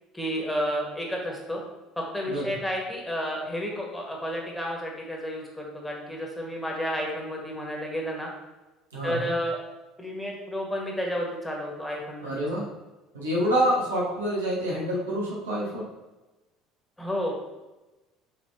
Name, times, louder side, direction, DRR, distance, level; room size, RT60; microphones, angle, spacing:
voice 1, 0.1-1.6 2.0-8.3 9.0-9.6 10.0-12.4 17.0-17.3, equal, 5° left, -1 dB, 1.3 m, -31 dB
voice 2, 8.9-9.3 12.2-12.7 13.1-15.8, equal, 90° right, -5 dB, 1.1 m, -27 dB
5.6 x 3.2 x 2.7 m, 1.1 s
hypercardioid pair, 65°, 0 cm